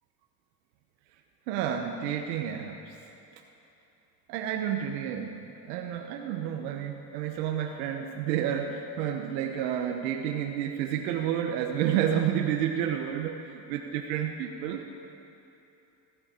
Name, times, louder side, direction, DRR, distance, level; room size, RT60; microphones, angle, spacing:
voice 1, 1.5-2.9 4.3-5.4 5.6-14.8, right 9 dB, 85° right, 3 dB, 1.0 m, -30 dB
15.0 x 14.5 x 4.4 m, 3.0 s
cardioid pair, 150°, 49 cm